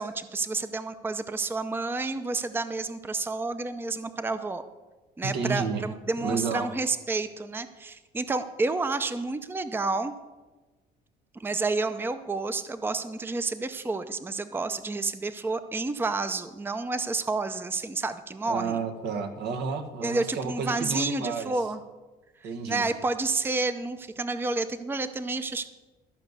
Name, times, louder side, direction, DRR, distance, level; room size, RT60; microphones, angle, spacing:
voice 1, 0.0-4.6 5.2-10.1 11.3-18.8 20.0-21.8 22.4-25.7, right 3 dB, 15° right, 11 dB, 0.6 m, -30 dB
voice 2, 5.2-5.8 6.2-6.7 18.5-21.6 22.4-22.9, right 5 dB, 80° right, 7 dB, 1.5 m, -31 dB
14.0 x 5.2 x 8.1 m, 1.2 s
cardioid pair, 110°, 17 cm